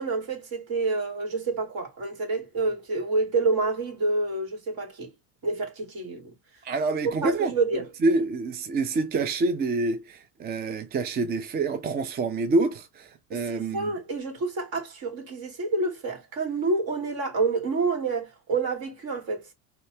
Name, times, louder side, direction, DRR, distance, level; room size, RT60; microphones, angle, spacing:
voice 1, 0.0-5.1 5.4-6.3 7.0-7.9 13.3-19.5, right 3 dB, 55° right, 2.7 m, -28 dB
voice 2, 6.6-7.5 8.0-13.9, right 3 dB, 25° right, 0.4 m, -27 dB
4.3 x 2.9 x 3.2 m
hypercardioid pair, 90°, 44 cm